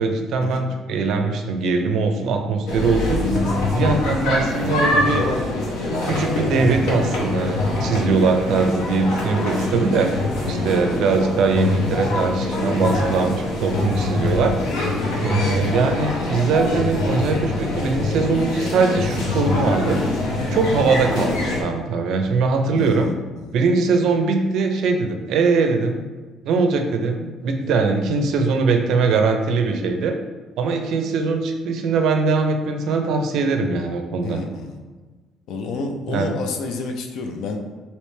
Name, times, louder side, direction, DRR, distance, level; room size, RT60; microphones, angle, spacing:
voice 1, 0.0-3.2 3.7-5.3 6.0-10.1 10.4-14.5 15.2-20.0 20.5-23.1 23.5-26.0 26.4-30.1 30.6-34.4 36.1-36.4, right 4 dB, 65° right, 5 dB, 0.4 m, -21 dB
sound 1, 2.7-21.6, left 2 dB, 90° left, 0.8 m, -24 dB
voice 2, 22.8-23.6 34.2-34.8 35.5-37.6, left 4 dB, 65° left, 4 dB, 0.4 m, -30 dB
3.2 x 2.8 x 3.2 m, 1.3 s
cardioid pair, 150°, 0 cm